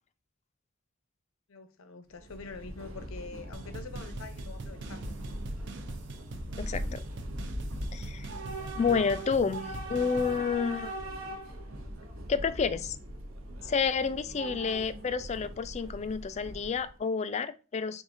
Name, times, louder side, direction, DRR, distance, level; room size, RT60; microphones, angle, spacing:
voice 1, 1.5-5.1, left 4 dB, 85° left, 0.6 m, -45 dB
Train / Subway metro underground, 2.1-17.0, right 1 dB, 80° right, 0.8 m, -40 dB
sound 1, 3.5-10.4, right 3 dB, 60° right, 0.5 m, -43 dB
voice 2, 6.6-7.0 7.9-8.3 8.8-10.9 12.3-13.0 13.6-18.0, left 5 dB, 35° left, 0.3 m, -30 dB
4.8 x 3.6 x 2.6 m
head